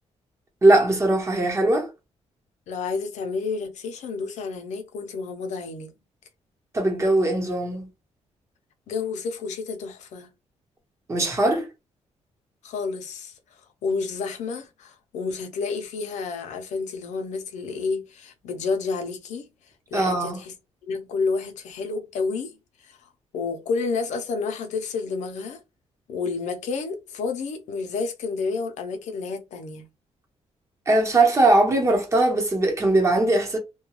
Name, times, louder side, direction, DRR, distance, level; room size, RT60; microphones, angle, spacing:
voice 1, 0.6-1.9 6.7-7.9 11.1-11.7 19.9-20.4 30.9-33.6, right 2 dB, 25° right, 0.9 m, -20 dB
voice 2, 2.7-5.9 8.9-10.3 12.6-13.3 13.8-19.5 19.9-20.5 20.8-22.5 22.8-23.0 23.3-25.6 26.1-29.9, left 4 dB, 85° left, 0.6 m, -30 dB
2.3 x 2.2 x 2.9 m
cardioid pair, 125°, 12 cm